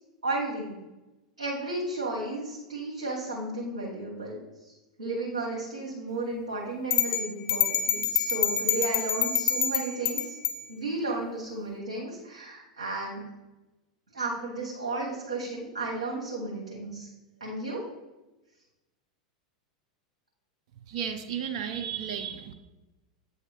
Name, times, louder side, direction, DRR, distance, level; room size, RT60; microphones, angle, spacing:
voice 1, 0.2-0.7 1.4-10.3 10.7-13.2 14.1-17.1 17.4-17.8, right 2 dB, 85° right, -5 dB, 1.4 m, -33 dB
sound 1, 6.9-10.6, left 9 dB, 50° left, 0.9 m, -26 dB
voice 2, 20.9-22.5, right 8 dB, 65° right, 7 dB, 0.6 m, -33 dB
8.4 x 2.8 x 4.9 m, 1.1 s
hypercardioid pair, 90°, 4 cm